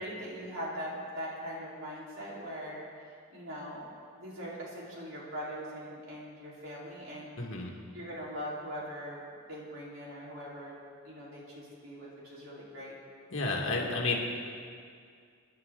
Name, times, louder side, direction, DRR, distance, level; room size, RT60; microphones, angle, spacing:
voice 1, 0.0-2.9 3.3-3.8 4.2-7.4 7.9-10.8 11.0-13.0, equal, 70° right, -6 dB, 4.5 m, -41 dB
voice 2, 7.4-7.7 13.3-14.2, left 3 dB, 70° left, -1 dB, 2.3 m, -31 dB
25.5 x 10.5 x 4.0 m, 2.2 s
head